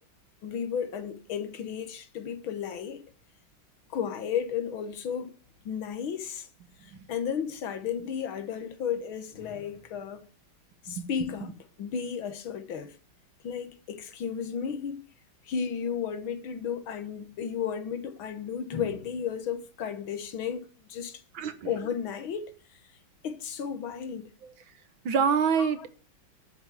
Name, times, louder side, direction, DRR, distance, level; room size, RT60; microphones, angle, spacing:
voice 1, 0.4-3.1 3.9-5.3 5.7-6.5 7.1-10.3 10.8-12.9 13.4-15.0 15.5-21.2 21.7-22.5 23.2-24.3 25.6-25.9, left 7 dB, 85° left, 2.1 m, -33 dB
voice 2, 21.3-21.7 25.1-25.9, right 6 dB, 75° right, 2.1 m, -26 dB
11.0 x 8.5 x 7.4 m
omnidirectional pair, 2.2 m